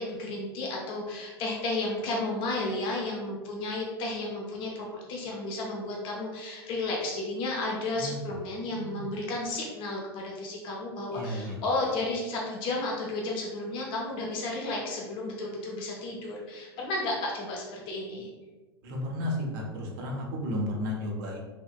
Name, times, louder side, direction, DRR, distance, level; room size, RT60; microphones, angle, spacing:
voice 1, 0.0-18.3, left 2 dB, 40° left, -1 dB, 0.6 m, -33 dB
voice 2, 8.7-9.1 11.1-11.6 18.8-21.4, left 1 dB, 55° right, -1 dB, 0.8 m, -33 dB
3.5 x 2.5 x 2.2 m, 1.2 s
figure-of-eight pair, 85°, 13 cm